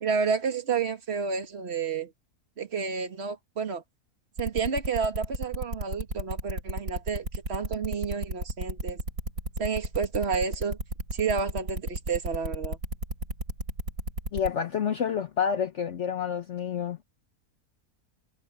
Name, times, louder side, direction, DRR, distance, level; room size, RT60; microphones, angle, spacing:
voice 1, 0.0-2.1 2.6-3.8 4.4-9.0 9.6-10.8 11.1-12.8, right 5 dB, 45° right, 2.0 m, -30 dB
sound 1, 4.4-14.5, right 1 dB, 80° right, 8.4 m, -32 dB
voice 2, 14.3-17.0, left 7 dB, 55° left, 1.1 m, -29 dB
omnidirectional pair, 1.6 m